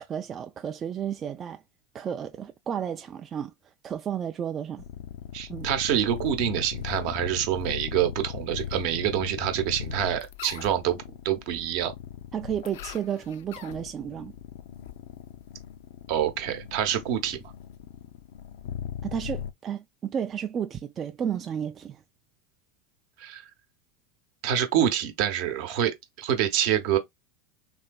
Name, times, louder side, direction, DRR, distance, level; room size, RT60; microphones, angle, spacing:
voice 1, 0.1-1.6 1.9-3.5 3.8-4.8 5.5-5.7 12.3-14.3 19.0-22.0, right 8 dB, 35° right, 0.3 m, -32 dB
sound 1, 4.8-19.5, left 9 dB, 70° left, 0.3 m, -39 dB
voice 2, 5.3-11.9 16.1-17.4 23.2-23.4 24.4-27.0, right 10 dB, 60° right, 0.7 m, -26 dB
3.1 x 2.6 x 2.2 m
hypercardioid pair, 90°, 0 cm